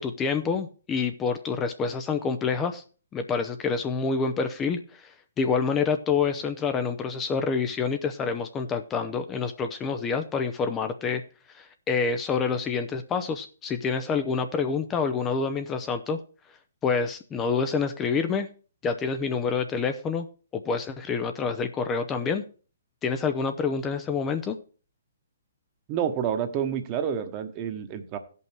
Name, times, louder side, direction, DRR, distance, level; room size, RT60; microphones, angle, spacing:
voice 1, 0.0-2.8 3.1-11.2 11.5-16.2 16.8-18.5 18.8-20.3 20.5-22.4 23.0-24.6, left 5 dB, 15° left, 7 dB, 0.6 m, -27 dB
voice 2, 25.9-28.2, right 8 dB, 30° right, 8 dB, 1.2 m, -29 dB
15.5 x 5.5 x 4.6 m, 0.39 s
hypercardioid pair, 145°, 0 cm